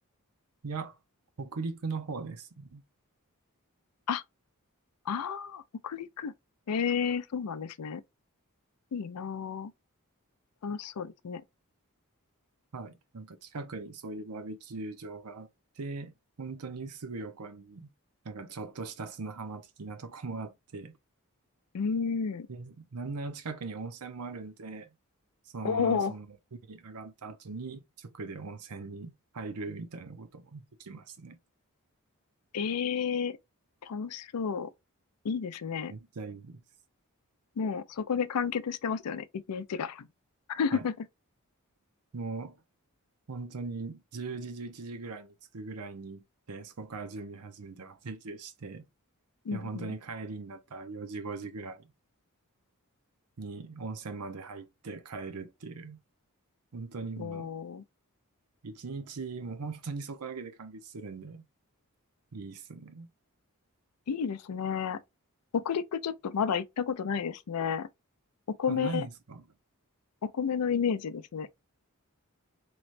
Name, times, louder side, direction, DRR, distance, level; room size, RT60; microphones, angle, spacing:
voice 1, 0.6-1.0 1.4-2.8 12.7-15.5 15.8-17.9 18.2-21.0 22.5-24.9 25.5-26.3 26.7-31.4 35.9-36.6 40.7-40.9 42.1-42.6 43.3-48.9 49.5-51.9 53.4-56.0 56.7-57.5 58.6-61.4 62.3-63.1 68.7-69.4, right 4 dB, 85° right, 0.7 m, -40 dB
voice 2, 5.1-6.3 6.7-8.0 8.9-9.7 10.6-11.4 21.7-22.5 25.6-26.1 32.5-33.4 33.8-34.7 35.2-35.9 37.6-40.1 40.5-40.9 49.5-49.9 57.2-57.8 64.1-65.0 65.5-67.9 68.5-69.1 70.2-71.5, left 6 dB, 85° left, 0.4 m, -31 dB
3.2 x 3.0 x 2.5 m
head